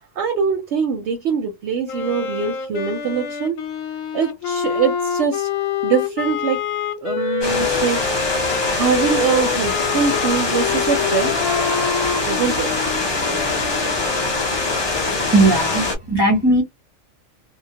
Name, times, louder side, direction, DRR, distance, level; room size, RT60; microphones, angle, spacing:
voice 1, 0.2-3.6 4.1-5.5 5.8-6.6 7.0-8.2 8.6-11.4 12.3-12.7, right 6 dB, 65° right, 0.8 m, -23 dB
Wind instrument woodwind instrument, 1.9-15.3, left 7 dB, 85° left, 1.1 m, -27 dB
sound 1, 7.4-16.0, left 3 dB, 30° left, 0.5 m, -23 dB
voice 2, 14.9-16.6, right 2 dB, 25° right, 0.6 m, -18 dB
2.2 x 2.1 x 2.7 m
omnidirectional pair, 1.4 m